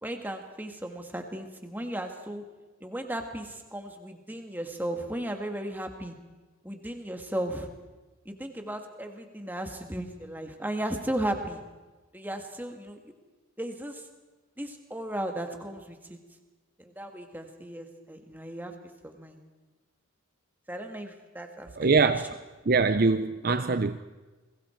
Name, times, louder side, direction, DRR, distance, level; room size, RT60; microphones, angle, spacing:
voice 1, 0.0-2.4 2.8-6.2 6.6-7.7 8.2-11.6 12.1-13.1 13.6-14.1 14.6-16.2 16.8-18.7 19.0-19.4 20.7-21.9 22.6-22.7 23.4-23.7, right 1 dB, 10° right, 1.8 m, -35 dB
voice 2, 21.8-22.4 22.7-24.0, right 4 dB, 45° right, 0.6 m, -23 dB
29.5 x 21.5 x 4.5 m
head